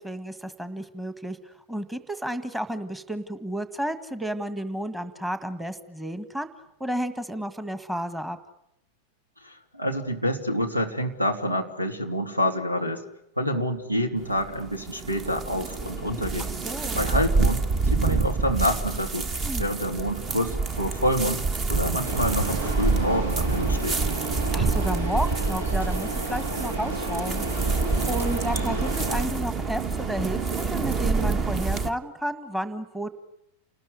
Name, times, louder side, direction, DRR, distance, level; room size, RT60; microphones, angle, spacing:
voice 1, 0.0-6.5 6.8-8.4 16.6-17.0 19.4-19.6 24.5-27.5 28.1-33.1, equal, 5° right, 11 dB, 1.8 m, -32 dB
voice 2, 9.4-13.0 13.4-16.5 16.9-19.3 19.6-21.4 21.7-24.0, equal, 85° right, 6 dB, 3.1 m, -27 dB
sound 1, 14.2-31.9, right 4 dB, 30° right, 1.6 m, -27 dB
sound 2, 22.0-29.3, right 2 dB, 70° right, 3.8 m, -32 dB
29.0 x 20.0 x 9.8 m, 0.80 s
figure-of-eight pair, 90°, 0 cm